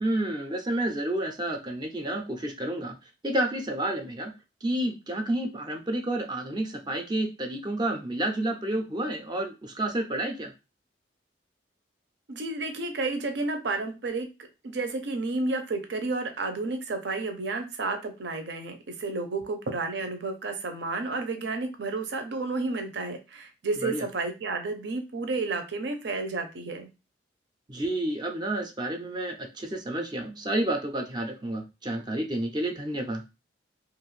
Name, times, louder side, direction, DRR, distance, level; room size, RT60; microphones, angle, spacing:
voice 1, 0.0-2.9 3.2-4.3 4.6-10.5 23.8-24.1 27.7-33.2, right 1 dB, 25° right, 4 dB, 0.4 m, -30 dB
voice 2, 12.3-26.9, right 3 dB, 70° right, 6 dB, 0.6 m, -31 dB
2.5 x 2.4 x 3.1 m, 0.28 s
head